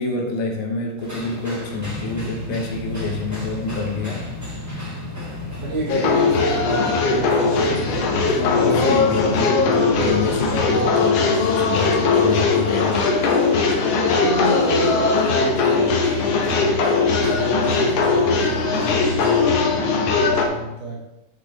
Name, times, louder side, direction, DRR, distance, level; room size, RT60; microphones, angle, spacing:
voice 1, 0.0-4.3 8.3-13.0, left 3 dB, 80° left, 2 dB, 2.7 m, -27 dB
sound 1, 1.0-19.4, equal, 10° right, 1.1 m, -39 dB
sound 2, 1.8-11.1, equal, 50° right, 3.5 m, -33 dB
voice 2, 5.6-8.8 9.2-9.6 14.1-21.0, right 2 dB, 75° right, -3 dB, 3.1 m, -31 dB
sound 3, 5.9-20.5, left 4 dB, 65° left, 1.8 m, -19 dB
9.9 x 6.1 x 3.4 m, 0.93 s
omnidirectional pair, 3.5 m